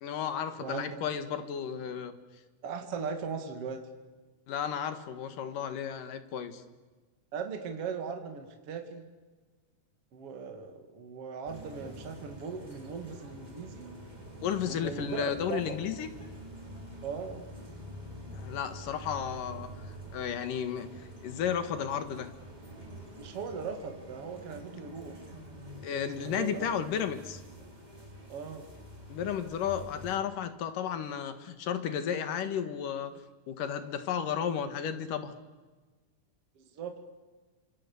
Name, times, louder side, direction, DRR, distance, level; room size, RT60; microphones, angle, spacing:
voice 1, 0.0-2.1 4.5-6.6 14.4-16.1 18.3-19.7 20.1-22.3 25.8-27.4 29.1-33.1 33.5-35.3, left 8 dB, 85° left, 9 dB, 3.3 m, -33 dB
voice 2, 0.6-1.0 2.6-3.9 7.3-9.0 10.1-13.9 14.6-15.8 17.0-17.5 23.2-25.2 25.9-26.7 28.3-28.7 36.6-37.0, right 5 dB, 50° right, 5 dB, 3.0 m, -39 dB
sound 1, 11.5-30.2, right 1 dB, 10° right, 4.1 m, -47 dB
29.0 x 26.5 x 7.1 m, 1.3 s
omnidirectional pair, 3.7 m